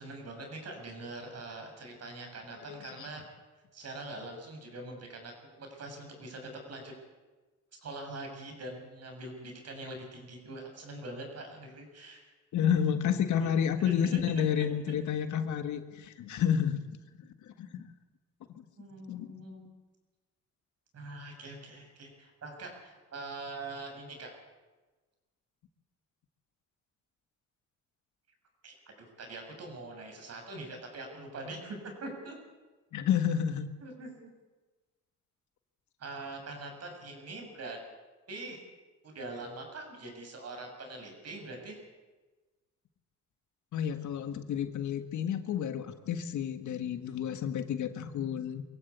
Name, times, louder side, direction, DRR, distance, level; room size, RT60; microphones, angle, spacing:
voice 1, 0.0-3.2 3.7-6.9 7.8-12.3 13.4-14.7 16.3-16.4 18.8-19.7 20.9-24.3 28.6-32.4 33.8-34.3 36.0-37.8 38.3-38.6 39.0-41.8, right 2 dB, 55° right, 3 dB, 6.9 m, -43 dB
voice 2, 2.7-3.1 12.5-16.8 17.6-17.9 19.1-19.3 32.9-33.7 43.7-48.6, left 8 dB, 75° left, 9 dB, 1.7 m, -30 dB
23.0 x 15.5 x 8.3 m, 1.2 s
cardioid pair, 90°, 30 cm